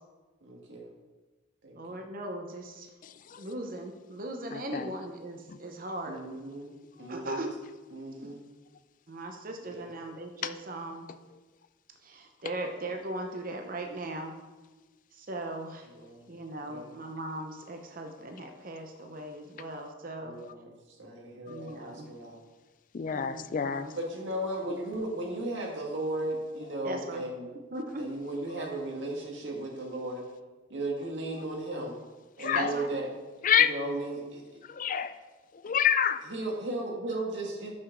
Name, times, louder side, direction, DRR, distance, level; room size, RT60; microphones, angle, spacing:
voice 1, 0.4-0.9 1.6-2.0 6.1-6.7 7.0-7.5 7.9-8.4 9.7-9.9 16.0-16.2 16.6-17.0 20.2-20.7 21.0-22.4 24.0-27.5 28.0-30.3 30.7-32.0 32.4-33.1 33.6-34.4 36.3-37.7, right 1 dB, 75° right, 0 dB, 1.8 m, -36 dB
voice 2, 1.7-2.9 3.4-6.2 7.1-7.5 8.2-8.3 9.1-11.1 12.0-14.3 15.1-15.9 16.3-20.4 21.5-22.1 23.1-23.9 24.6-24.7 26.8-27.3 27.7-28.1 32.5-33.0, right 1 dB, 50° right, 4 dB, 0.8 m, -38 dB
voice 3, 4.5-4.9 21.5-21.7 22.9-23.9 32.4-32.7 33.4-33.7 34.7-35.1 35.6-36.2, left 8 dB, 45° left, 12 dB, 0.4 m, -27 dB
6.3 x 6.1 x 5.9 m, 1.2 s
head